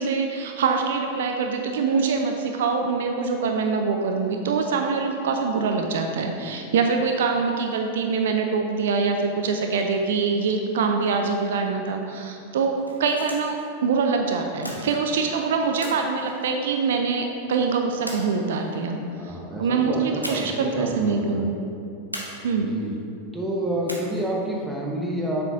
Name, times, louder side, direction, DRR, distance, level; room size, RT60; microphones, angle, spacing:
voice 1, 0.0-19.0 19.2-21.5 22.4-22.7, right 5 dB, 60° right, 3 dB, 0.5 m, -24 dB
sound 1, 12.8-13.7 14.6-15.3 15.8-17.1 18.1-18.8 20.2-20.7 21.0-21.1 22.1-22.9 23.9-24.4, equal, 90° right, 0.9 m, -37 dB
voice 2, 19.2-21.5 22.6-22.9 23.3-25.4, right 1 dB, 5° right, -2 dB, 1.1 m, -29 dB
7.3 x 6.1 x 3.6 m, 2.6 s
figure-of-eight pair, 90°, 0 cm